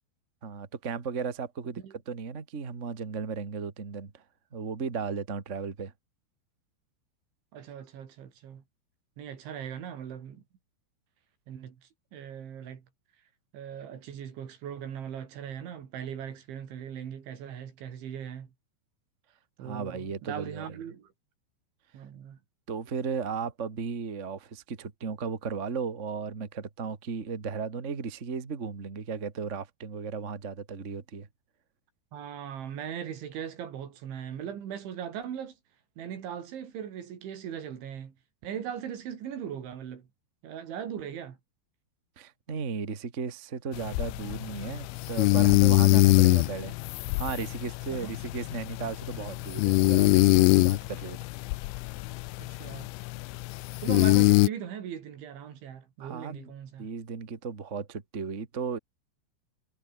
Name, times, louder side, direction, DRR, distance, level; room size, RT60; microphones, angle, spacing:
voice 1, 0.4-1.8 2.1-4.2 4.5-5.9 19.6-20.8 22.7-31.3 42.1-46.7 47.2-51.2 56.0-56.5 56.8-58.8, right 5 dB, 40° right, 0.9 m, -35 dB
voice 2, 7.5-8.6 9.2-10.4 11.5-12.9 13.5-18.5 19.6-21.1 21.9-22.4 32.1-35.6 36.0-38.2 38.4-40.1 40.4-41.4 47.9-48.2 52.4-52.9 53.8-56.9, right 9 dB, 85° right, 5.6 m, -39 dB
sound 1, 43.7-54.5, left 21 dB, 90° left, 3.0 m, -24 dB
omnidirectional pair, 5.2 m